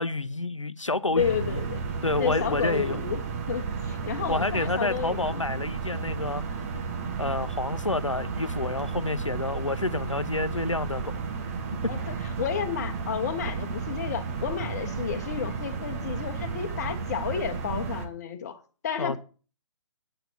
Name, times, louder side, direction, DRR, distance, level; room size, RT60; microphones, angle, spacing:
voice 1, 0.0-1.6 2.0-3.0 4.3-6.4 7.2-11.2 19.0-19.2, left 2 dB, 85° left, 1.0 m, -29 dB
voice 2, 1.1-1.8 2.2-3.2 3.5-5.5 11.9-19.2, left 8 dB, 35° left, 1.6 m, -31 dB
sound 1, 1.2-18.1, right 5 dB, 30° right, 1.7 m, -33 dB
9.1 x 9.0 x 7.2 m
figure-of-eight pair, 140°, 16 cm